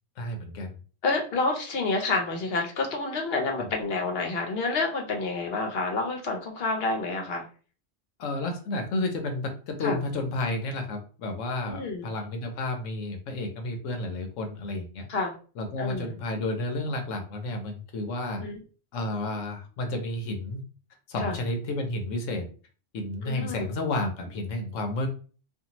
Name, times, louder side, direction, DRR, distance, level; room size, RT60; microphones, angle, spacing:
voice 1, 0.2-0.7 3.6-3.7 8.2-15.1 15.6-18.4 18.9-20.6 21.1-22.5 22.9-25.1, left 2 dB, 80° left, 4 dB, 1.0 m, -31 dB
voice 2, 1.0-7.4 9.8-10.0 11.7-12.1 15.1-15.3 15.8-16.1 18.4-18.6 21.2-21.4 23.2-23.7, left 3 dB, 55° left, 2 dB, 0.9 m, -29 dB
2.6 x 2.5 x 2.9 m, 0.38 s
omnidirectional pair, 1.3 m